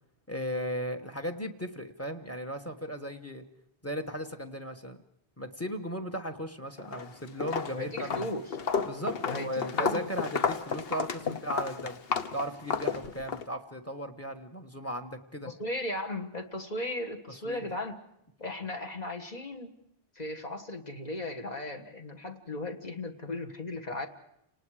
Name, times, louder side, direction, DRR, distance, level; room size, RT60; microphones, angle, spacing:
voice 1, 0.3-3.4 3.8-5.0 5.4-8.3 8.8-12.0 12.3-15.5 17.4-17.7, equal, 15° left, 8 dB, 1.3 m, -36 dB
Walk footsteps, 6.8-7.1 7.4-13.4, left 5 dB, 70° left, 1.2 m, -32 dB
voice 2, 7.7-8.5 9.2-10.1 11.2-11.4 12.9-13.0 15.5-18.0 18.4-19.7 20.2-24.1, left 1 dB, 45° left, 3 dB, 1.6 m, -36 dB
30.0 x 19.0 x 4.9 m, 0.79 s
omnidirectional pair, 1.0 m